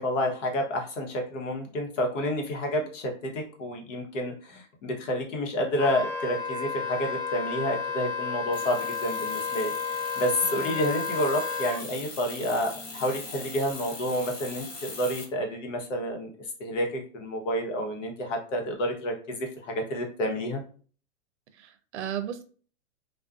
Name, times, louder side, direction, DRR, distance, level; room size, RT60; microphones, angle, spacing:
voice 1, 0.0-9.7 10.2-16.3 16.6-20.6, equal, 75° left, 2 dB, 1.0 m, -29 dB
Wind instrument woodwind instrument, 5.8-11.8, left 5 dB, 10° left, 0.4 m, -32 dB
sound 1, 8.5-15.3, left 3 dB, 50° left, 1.1 m, -41 dB
voice 2, 10.4-10.8 21.6-22.4, right 9 dB, 65° right, 10 dB, 0.6 m, -35 dB
2.5 x 2.3 x 2.3 m, 0.42 s
supercardioid pair, 150°, 38 cm